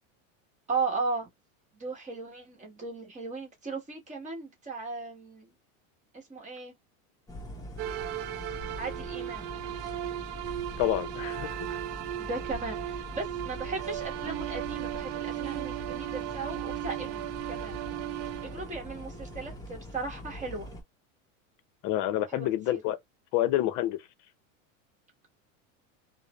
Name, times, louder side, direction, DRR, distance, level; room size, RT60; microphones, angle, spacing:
voice 1, 0.7-1.3 1.7-5.5 6.1-6.7 8.8-9.5 12.2-17.8 18.4-20.7 22.3-22.8, right 4 dB, 15° right, 1.1 m, -36 dB
sound 1, 7.3-20.8, equal, 10° left, 0.7 m, -43 dB
sound 2, 7.8-19.6, right 13 dB, 60° right, 0.5 m, -36 dB
voice 2, 10.8-11.5 21.8-23.0 23.3-24.0, left 14 dB, 50° left, 0.6 m, -28 dB
2.4 x 2.0 x 2.9 m
supercardioid pair, 120°, 41 cm